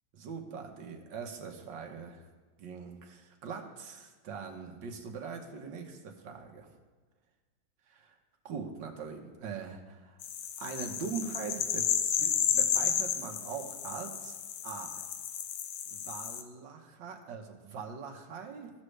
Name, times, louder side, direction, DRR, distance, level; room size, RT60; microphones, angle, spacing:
voice 1, 0.1-2.2 2.6-6.8 7.9-8.2 8.5-10.2 10.6-14.4 14.6-15.1 15.9-18.7, right 5 dB, 75° right, 3 dB, 1.8 m, -42 dB
sound 1, 10.2-16.4, left 9 dB, 85° left, 1.4 m, -32 dB
16.0 x 6.3 x 3.3 m, 1.3 s
omnidirectional pair, 2.1 m